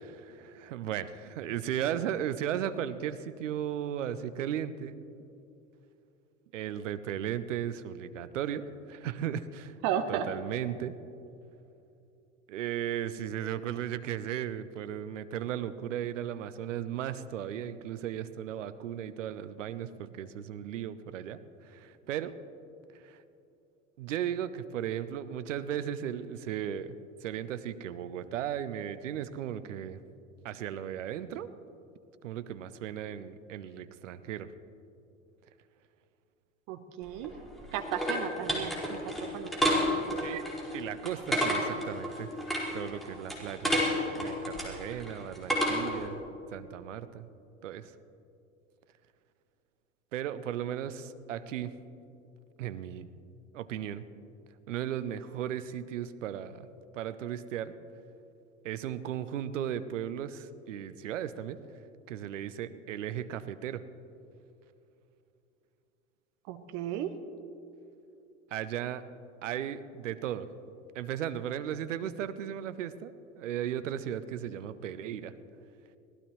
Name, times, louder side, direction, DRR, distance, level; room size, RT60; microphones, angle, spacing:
voice 1, 0.0-5.0 6.5-9.8 10.1-10.9 12.5-22.4 22.9-23.2 24.0-26.9 27.2-30.0 30.4-31.5 32.2-34.5 40.2-40.5 40.7-42.4 42.7-43.8 44.1-46.2 46.5-47.3 47.6-47.9 50.1-51.7 52.6-53.1 53.5-54.0 54.7-56.7 56.9-57.7 58.6-61.6 62.1-63.8 68.5-69.0 69.4-70.5 70.9-75.3, right 10 dB, 70° right, 13 dB, 0.8 m, -36 dB
voice 2, 9.8-10.3 36.7-37.3 37.7-40.0 66.5-67.1, right 9 dB, 50° right, 9 dB, 1.1 m, -34 dB
sound 1, 37.1-46.1, equal, ahead, 5.0 m, -31 dB
24.5 x 18.0 x 3.2 m, 2.7 s
figure-of-eight pair, 70°, 39 cm